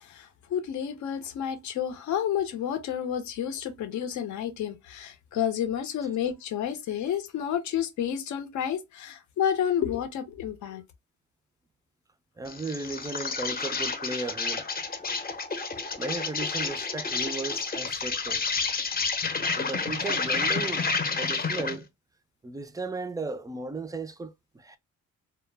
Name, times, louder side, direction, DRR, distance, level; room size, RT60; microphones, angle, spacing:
voice 1, 0.1-10.8, left 9 dB, 70° left, 0.7 m, -30 dB
voice 2, 12.4-14.7 16.0-18.4 19.6-20.9 21.2-21.9 22.4-24.8, right 3 dB, 10° right, 0.3 m, -35 dB
Insect, 12.5-21.8, left 4 dB, 30° left, 0.7 m, -30 dB
2.1 x 2.0 x 3.2 m
cardioid pair, 90°, 30 cm